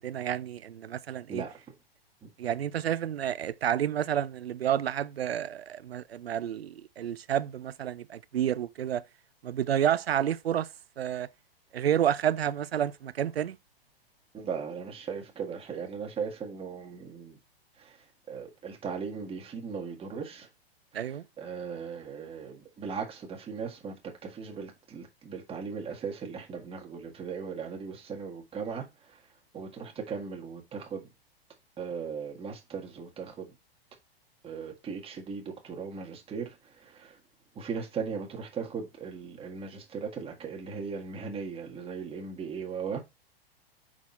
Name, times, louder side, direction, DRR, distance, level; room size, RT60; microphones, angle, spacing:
voice 1, 0.0-1.4 2.4-9.0 9.4-10.7 11.0-11.3 11.7-13.6 20.9-21.2, right 10 dB, 75° right, 0.6 m, -30 dB
voice 2, 14.3-17.4 17.8-20.5 20.9-24.0 24.2-29.2 29.5-31.1 31.8-33.5 34.4-37.2 37.6-43.0, right 6 dB, 20° right, 1.8 m, -38 dB
6.1 x 4.1 x 4.3 m
figure-of-eight pair, 105°, 31 cm